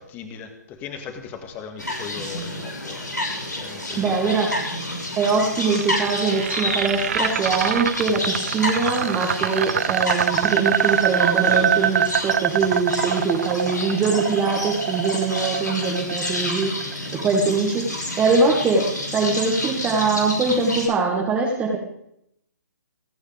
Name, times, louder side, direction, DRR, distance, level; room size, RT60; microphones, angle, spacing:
voice 1, 0.0-4.4, left 6 dB, 20° left, 7 dB, 2.0 m, -38 dB
sound 1, 1.8-20.9, left 1 dB, 90° left, 6.3 m, -30 dB
voice 2, 4.0-4.6 5.2-16.8 17.1-17.9 18.2-21.8, right 4 dB, 15° right, 0 dB, 1.9 m, -22 dB
sound 2, 5.3-17.4, right 9 dB, 50° right, 0.9 m, -24 dB
28.0 x 9.5 x 3.5 m, 0.74 s
figure-of-eight pair, 130°, 9 cm